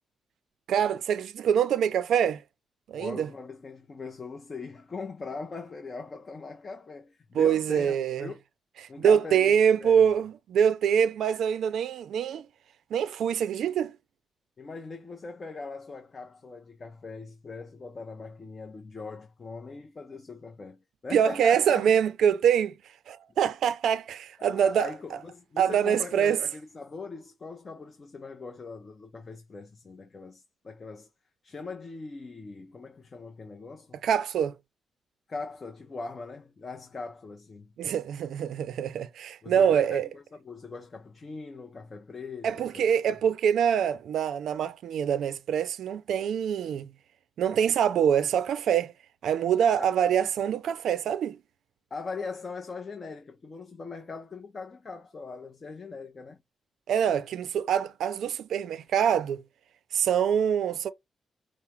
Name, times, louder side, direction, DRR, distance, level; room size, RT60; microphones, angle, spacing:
voice 1, 0.7-2.4 2.9-3.3 7.3-8.3 9.0-12.5 12.9-13.9 21.1-22.7 23.1-24.9 25.6-26.4 34.0-34.5 37.8-40.1 42.4-46.9 47.4-48.9 49.2-51.4 56.9-59.4 59.9-60.9, right 8 dB, 75° right, 0.4 m, -25 dB
voice 2, 2.9-8.4 8.9-10.0 14.6-21.9 24.4-31.1 31.4-34.0 35.3-37.7 39.4-42.9 49.8-49.9 51.9-56.4, left 4 dB, 25° left, 0.5 m, -41 dB
4.7 x 2.0 x 4.3 m
wide cardioid pair, 175°, 0 cm